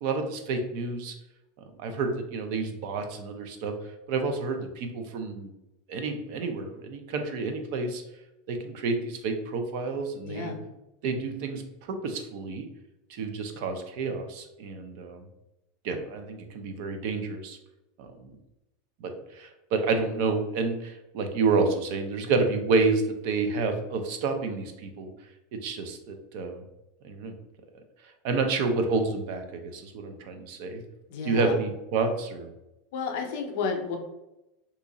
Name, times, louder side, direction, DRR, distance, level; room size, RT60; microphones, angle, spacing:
voice 1, 0.0-1.1 1.8-5.5 5.9-8.0 8.5-10.5 11.0-11.6 11.9-12.7 13.1-15.3 15.8-17.6 18.0-18.3 19.0-25.1 25.5-26.6 27.0-27.3 28.2-30.8 31.2-32.5, right 4 dB, 50° right, 6 dB, 0.4 m, -29 dB
voice 2, 10.2-10.6 31.1-31.6 32.9-34.0, left 5 dB, 55° left, 3 dB, 0.6 m, -31 dB
2.8 x 2.5 x 3.8 m, 0.94 s
supercardioid pair, 170°, 0 cm